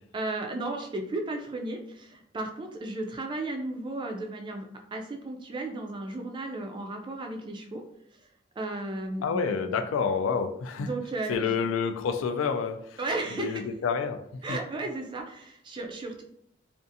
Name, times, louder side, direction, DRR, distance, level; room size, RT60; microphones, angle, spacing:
voice 1, 0.1-7.8 8.6-9.4 10.8-11.6 13.0-13.6 14.4-16.2, right 2 dB, 25° right, 3 dB, 0.3 m, -34 dB
voice 2, 9.2-10.9 11.3-13.0 13.4-14.2, left 5 dB, 90° left, 8 dB, 0.3 m, -28 dB
2.5 x 2.4 x 2.5 m, 0.72 s
head